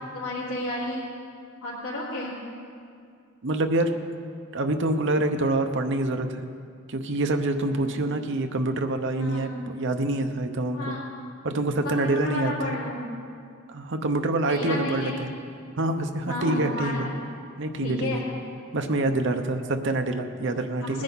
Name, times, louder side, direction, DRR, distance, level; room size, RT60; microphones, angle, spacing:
voice 1, 0.1-1.0 1.6-2.4 7.8-8.0 9.2-9.5 10.7-11.1 11.8-13.0 14.4-15.3 16.2-17.1 17.8-18.3 20.4-21.0, left 1 dB, 90° left, -10 dB, 2.9 m, -32 dB
voice 2, 3.4-3.9 4.5-6.5 6.9-9.5 9.7-11.0 11.4-12.7 13.7-15.3 15.8-17.1 17.6-18.2 18.7-21.0, right 2 dB, 65° right, 5 dB, 0.9 m, -26 dB
20.0 x 10.0 x 4.1 m, 2.3 s
head